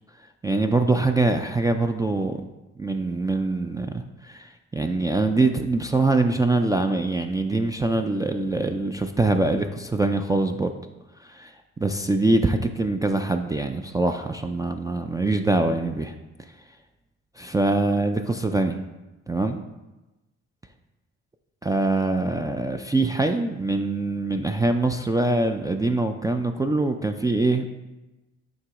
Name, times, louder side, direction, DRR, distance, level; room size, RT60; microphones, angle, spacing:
voice 1, 0.4-2.4 2.8-10.7 11.2-11.5 11.8-16.1 17.4-18.8 19.3-19.6 21.6-27.7, right 2 dB, 15° right, 4 dB, 0.3 m, -23 dB
7.9 x 3.0 x 4.8 m, 1.0 s
cardioid pair, 90°, 30 cm